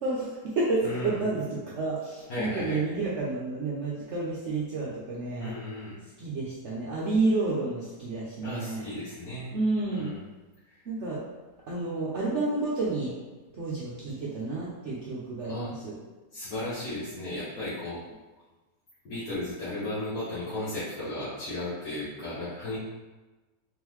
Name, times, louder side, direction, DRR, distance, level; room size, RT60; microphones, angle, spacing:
voice 1, 0.0-5.5 6.2-8.9 9.5-10.1 10.9-11.2 11.7-13.1 13.5-15.9, right 3 dB, 60° right, -6 dB, 0.8 m, -30 dB
voice 2, 0.8-1.3 2.3-2.8 5.4-6.0 8.4-9.5 9.9-10.2 10.7-10.8 15.4-15.7 16.3-18.0 19.0-22.8, left 1 dB, 60° left, -11 dB, 1.5 m, -35 dB
3.8 x 3.6 x 3.0 m, 1.2 s
omnidirectional pair, 1.8 m